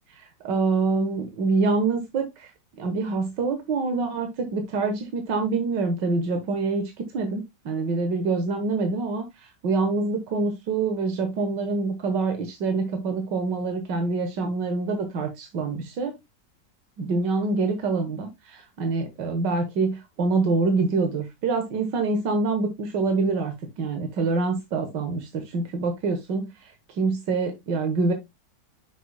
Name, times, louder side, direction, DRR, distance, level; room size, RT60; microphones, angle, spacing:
voice 1, 0.1-2.5 2.8-16.1 17.0-28.1, right 3 dB, 90° right, 1.9 m, -26 dB
10.0 x 6.1 x 2.2 m
omnidirectional pair, 1.9 m